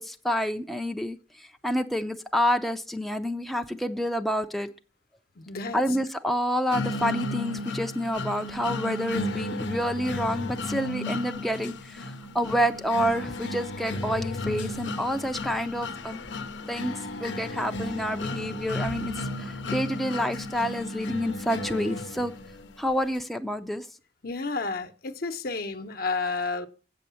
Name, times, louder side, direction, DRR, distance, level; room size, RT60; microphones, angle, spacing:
voice 1, 0.0-4.7 5.7-16.2 16.7-22.3 22.8-23.9, equal, ahead, 0.5 m, -28 dB
voice 2, 5.4-5.8 24.2-26.7, left 3 dB, 55° left, 0.9 m, -31 dB
sound 1, 6.7-22.7, left 2 dB, 85° left, 0.8 m, -34 dB
8.4 x 6.4 x 6.9 m
head